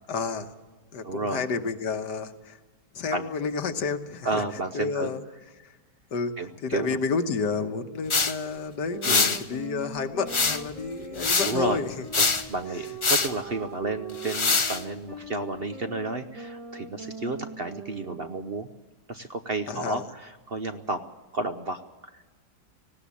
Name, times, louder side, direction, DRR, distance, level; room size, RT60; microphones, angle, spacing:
voice 1, 0.1-0.5 0.9-2.6 3.0-4.4 4.7-5.2 6.1-6.3 6.6-11.9 19.7-20.0, left 5 dB, 80° left, 8 dB, 1.8 m, -30 dB
voice 2, 1.0-1.5 3.1-3.3 4.2-5.1 6.4-7.0 9.0-9.4 11.4-11.8 12.2-18.7 19.1-21.0 21.3-22.4, right 3 dB, 45° right, 8 dB, 0.8 m, -32 dB
sound 1, 8.1-8.3 9.0-9.4 10.3-10.7 11.2-11.6 12.1-12.5 13.0-13.3 14.2-14.8, left 4 dB, 40° left, 0.4 m, -23 dB
sound 2, 8.9-18.5, right 3 dB, 20° right, 1.3 m, -42 dB
19.0 x 17.0 x 8.4 m, 1.2 s
omnidirectional pair, 1.8 m